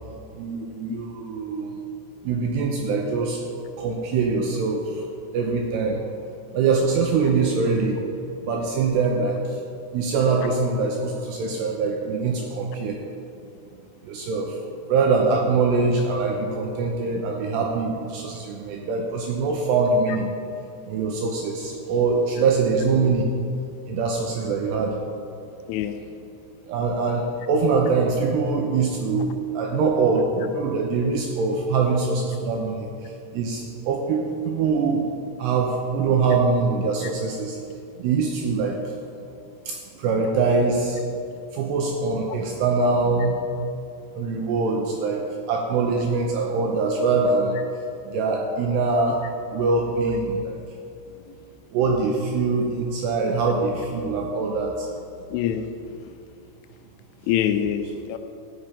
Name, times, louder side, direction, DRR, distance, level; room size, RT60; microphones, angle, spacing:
voice 1, 0.4-1.7 2.2-3.4 3.8-5.0 5.3-6.0 6.5-8.0 8.4-9.4 9.9-13.0 14.1-14.5 14.9-20.3 20.9-23.3 23.9-24.9 26.7-32.9 33.3-35.0 35.4-37.6 38.0-38.8 39.7-41.0 41.5-43.4 44.2-47.5 48.1-49.2 49.5-50.6 51.7-54.9, right 4 dB, 80° right, 0 dB, 2.5 m, -23 dB
voice 2, 55.3-55.7 56.0-56.1 57.3-58.2, left 10 dB, 85° left, 8 dB, 2.9 m, -25 dB
15.0 x 5.8 x 5.2 m, 2.6 s
omnidirectional pair, 5.6 m